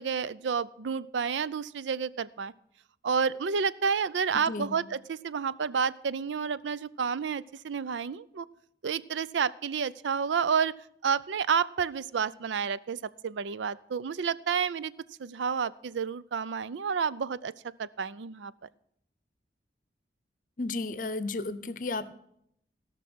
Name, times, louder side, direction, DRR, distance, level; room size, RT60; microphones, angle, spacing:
voice 1, 0.0-2.5 3.0-8.5 8.8-10.7 11.0-14.9 15.2-17.5 17.8-18.5, right 6 dB, 90° right, 17 dB, 0.5 m, -30 dB
voice 2, 4.3-4.8 20.6-22.1, left 3 dB, 45° left, 14 dB, 0.7 m, -33 dB
17.0 x 6.1 x 6.1 m, 0.73 s
head